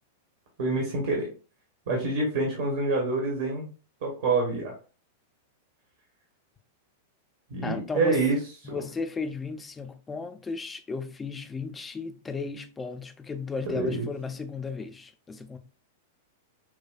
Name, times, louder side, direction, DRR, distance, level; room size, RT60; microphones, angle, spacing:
voice 1, 0.6-1.3 1.9-3.7 4.0-4.7 7.5-8.4 8.6-8.8 13.7-14.1, right 3 dB, 55° right, 1.2 m, -27 dB
voice 2, 7.6-8.2 8.6-15.6, left 4 dB, 15° left, 0.5 m, -35 dB
5.9 x 2.3 x 2.3 m
figure-of-eight pair, 95°, 0 cm